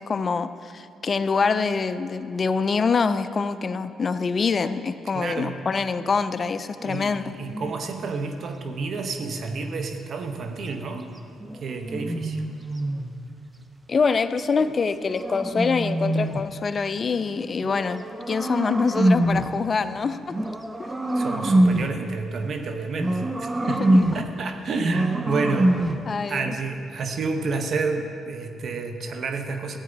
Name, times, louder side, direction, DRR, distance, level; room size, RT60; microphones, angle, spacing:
voice 1, 0.0-7.4 13.9-20.4 20.8-20.9 23.6-24.1 26.1-26.5, left 5 dB, 40° left, 12 dB, 0.4 m, -25 dB
voice 2, 5.1-5.5 6.8-11.1 11.5-12.4 21.1-25.8 26.3-29.8, right 4 dB, 55° right, 6 dB, 0.9 m, -30 dB
sound 1, 7.4-9.8 11.4-13.2 14.6-16.6 17.6-19.6 20.3-22.0 23.0-24.4 24.8-26.1, right 1 dB, 15° right, 0.6 m, -25 dB
14.0 x 8.8 x 4.0 m, 2.4 s
cardioid pair, 90°, 0 cm